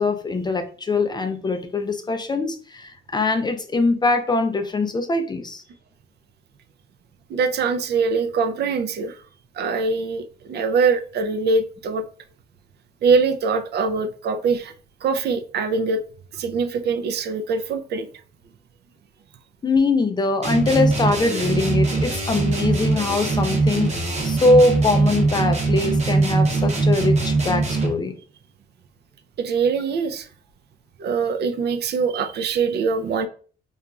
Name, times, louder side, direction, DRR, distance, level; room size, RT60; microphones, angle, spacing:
voice 1, 0.0-5.6 19.6-28.2, left 3 dB, 20° left, 0.3 m, -22 dB
voice 2, 7.3-9.2 9.6-12.0 13.0-14.7 15.0-16.0 16.3-18.1 29.4-30.3 31.0-33.3, right 4 dB, 55° right, 0.4 m, -23 dB
sound 1, 20.4-28.1, right 3 dB, 35° right, 0.8 m, -21 dB
2.9 x 2.3 x 2.3 m
cardioid pair, 90°, 20 cm